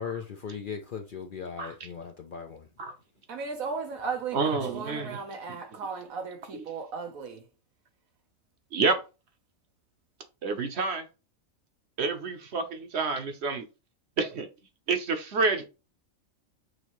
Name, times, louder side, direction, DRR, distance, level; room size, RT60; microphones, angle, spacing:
voice 1, 0.0-2.7, left 6 dB, 55° left, 0.6 m, -38 dB
voice 2, 3.3-7.5, right 5 dB, 85° right, 1.4 m, -36 dB
voice 3, 4.3-5.2 6.5-6.6 8.7-8.9 10.4-11.0 12.0-13.6 14.2-14.5 14.9-15.7, right 4 dB, 55° right, 1.1 m, -28 dB
6.3 x 2.7 x 3.0 m
omnidirectional pair, 1.4 m